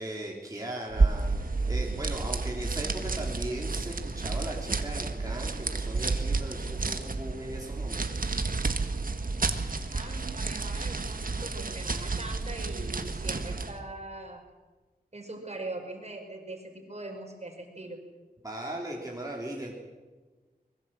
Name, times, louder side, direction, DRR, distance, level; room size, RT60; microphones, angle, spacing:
voice 1, 0.0-8.3 18.4-19.7, right 1 dB, 20° right, -2 dB, 3.4 m, -38 dB
sound 1, 0.9-13.8, right 3 dB, 60° right, 1.8 m, -30 dB
voice 2, 9.9-14.4 15.1-18.0, right 2 dB, 45° right, 4 dB, 5.1 m, -41 dB
23.5 x 21.0 x 7.6 m, 1.3 s
wide cardioid pair, 75°, 16 cm